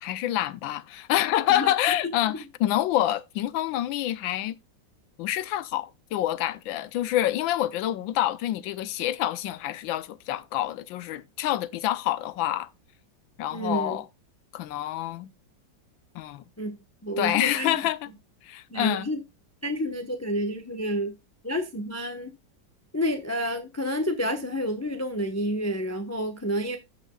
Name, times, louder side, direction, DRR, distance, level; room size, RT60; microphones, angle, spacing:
voice 1, 0.0-4.5 5.2-12.7 13.4-14.1 14.5-15.3 16.1-16.4 17.2-18.1 18.4-19.1, left 13 dB, 85° left, 1.4 m, -27 dB
voice 2, 13.5-14.0 16.6-16.8 17.0-17.7 18.7-19.2 19.6-21.1 21.4-22.3 22.9-26.8, equal, 10° left, 0.8 m, -29 dB
15.5 x 5.6 x 2.3 m
omnidirectional pair, 2.1 m